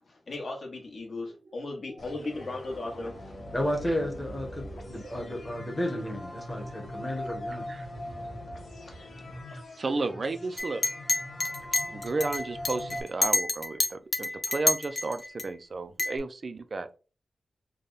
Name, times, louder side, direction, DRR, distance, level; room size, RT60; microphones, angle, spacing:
voice 1, 0.1-3.4, left 2 dB, 50° left, 1.2 m, -37 dB
sound 1, 2.0-13.0, left 1 dB, 75° left, 1.1 m, -41 dB
voice 2, 3.5-7.7, equal, 10° left, 0.9 m, -32 dB
voice 3, 9.8-10.8 11.9-16.9, right 3 dB, 40° right, 0.3 m, -33 dB
Chink clink, 10.6-15.4 16.0-16.2, left 2 dB, 35° left, 0.4 m, -28 dB
3.4 x 2.2 x 3.9 m
wide cardioid pair, 170°, 0 cm